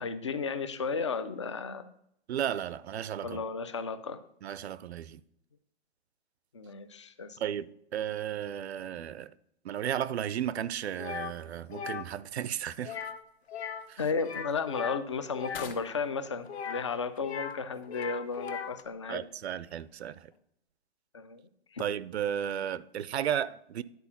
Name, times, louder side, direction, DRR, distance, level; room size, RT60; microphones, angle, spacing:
voice 1, 0.0-1.8 3.2-4.2 6.5-7.4 14.0-19.2 21.1-21.4 21.7-21.8, left 5 dB, 30° left, 0.4 m, -34 dB
voice 2, 2.3-3.4 4.4-5.2 7.4-7.7 7.9-9.3 9.6-13.0 13.9-14.0 19.1-20.3 21.8-23.8, right 10 dB, 80° right, 0.6 m, -34 dB
sound 1, 11.0-11.3 11.7-12.1 12.8-13.2 13.5-13.9 14.2-15.7 16.5-17.6 17.8-18.8, left 7 dB, 80° left, 0.9 m, -38 dB
sound 2, 12.3-20.4, left 6 dB, 55° left, 1.2 m, -54 dB
10.5 x 4.4 x 5.6 m
hypercardioid pair, 170°, 32 cm